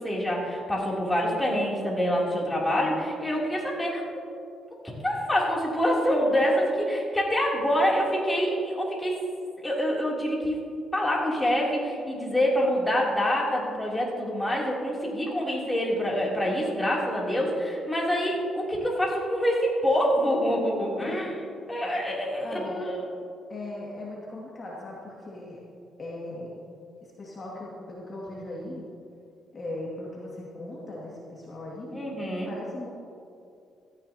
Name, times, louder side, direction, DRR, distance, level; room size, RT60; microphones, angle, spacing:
voice 1, 0.0-4.0 5.0-9.1 9.6-10.6 10.9-21.4 21.7-23.0 31.9-32.5, equal, 10° left, -4 dB, 3.2 m, -26 dB
voice 2, 20.9-21.4 22.4-22.9 23.5-25.6 26.0-26.5 27.2-28.8 29.5-32.0 32.5-32.9, left 1 dB, 35° left, -5 dB, 2.3 m, -38 dB
16.5 x 14.0 x 2.9 m, 2.5 s
cardioid pair, 120°, 0 cm